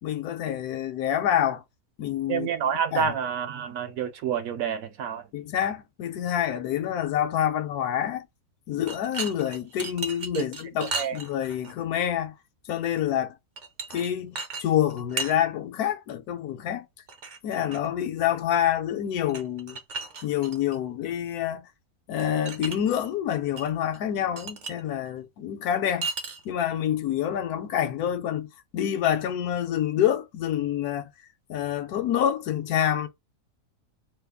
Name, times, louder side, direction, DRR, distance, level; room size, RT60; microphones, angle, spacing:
voice 1, 0.0-1.6 2.0-2.5 2.9-3.1 5.3-8.3 8.7-12.3 12.7-13.3 13.9-16.9 17.4-19.8 20.2-21.7 22.1-26.1 26.4-31.1 31.5-33.1, left 10 dB, 80° left, 1.2 m, -27 dB
voice 2, 2.3-5.3 10.4-10.5 10.8-11.2, right 7 dB, 70° right, 1.0 m, -28 dB
sound 1, 8.8-11.7 13.6-14.1 14.3-14.6 14.9-15.3 17.1-17.9 19.3-20.8 22.2-22.8 23.0-23.7 23.9-24.0 24.4-24.8 26.0-26.6, right 4 dB, 50° right, 0.5 m, -35 dB
2.9 x 2.3 x 3.5 m
omnidirectional pair, 1.6 m